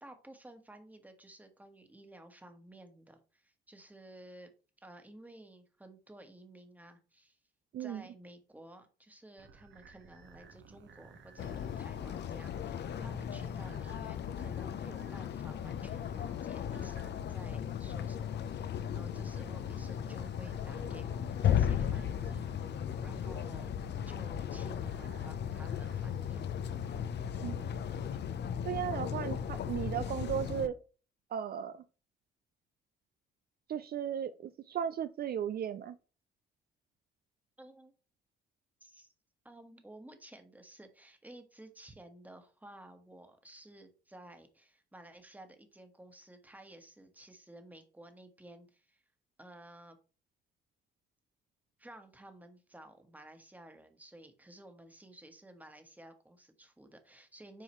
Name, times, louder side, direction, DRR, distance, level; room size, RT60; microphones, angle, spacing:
voice 1, 0.0-4.5 4.8-7.4 7.8-23.8 24.1-26.6 37.6-37.9 38.8-39.1 39.4-49.0 49.4-50.0 51.8-57.6, right 1 dB, 10° right, 6 dB, 1.4 m, -54 dB
sound 1, 9.4-28.1, right 5 dB, 70° right, 1.3 m, -57 dB
sound 2, 11.4-30.7, left 9 dB, 60° left, 0.7 m, -36 dB
voice 2, 28.6-30.8 31.3-31.8 33.7-36.0, right 9 dB, 50° right, 12 dB, 0.4 m, -36 dB
7.6 x 4.7 x 3.1 m, 0.35 s
cardioid pair, 90°, 20 cm